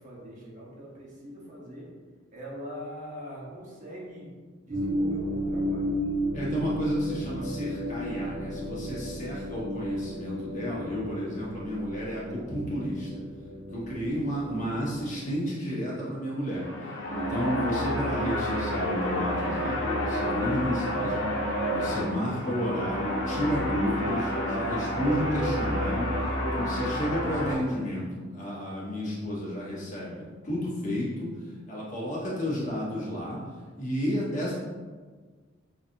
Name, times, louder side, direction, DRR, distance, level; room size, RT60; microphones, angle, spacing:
voice 1, 0.0-1.9 2.3-4.3 4.6-5.9, equal, 40° right, -5 dB, 1.1 m, -42 dB
sound 1, 4.7-15.3, equal, 60° right, 1.3 m, -33 dB
voice 2, 6.3-13.1 13.7-16.7 17.1-21.2 21.7-28.1 28.3-31.3 31.7-33.4 33.8-34.5, equal, 40° left, -6 dB, 1.2 m, -31 dB
sound 2, 16.4-27.5, equal, 80° left, 0.9 m, -29 dB
5.7 x 2.8 x 2.6 m, 1.5 s
head